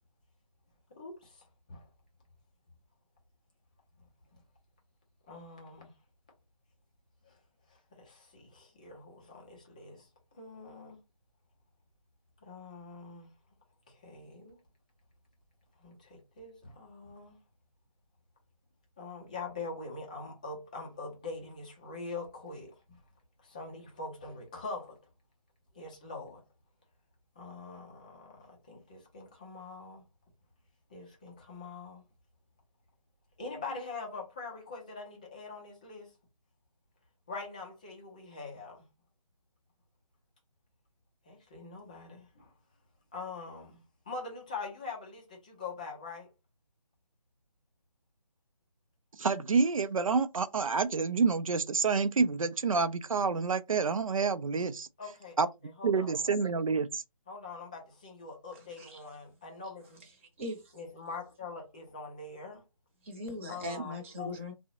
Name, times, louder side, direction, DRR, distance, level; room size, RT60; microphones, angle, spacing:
voice 1, 0.9-1.9 4.3-4.4 5.3-6.0 7.2-7.4 7.7-10.1 10.3-11.0 12.4-13.3 13.9-14.6 15.8-17.4 19.0-23.0 23.4-25.0 25.7-26.4 27.4-30.0 30.9-32.0 33.4-36.2 37.3-38.9 41.2-42.5 43.1-46.3 55.0-56.3 57.3-60.0 60.7-62.6 63.5-64.3, left 3 dB, 15° left, 0.4 m, -44 dB
voice 2, 49.2-54.9 55.4-55.5 55.8-57.0, right 5 dB, 75° right, 0.4 m, -28 dB
voice 3, 60.4-60.7 63.0-64.5, left 2 dB, 25° right, 0.8 m, -39 dB
3.5 x 2.0 x 2.7 m
figure-of-eight pair, 150°, 18 cm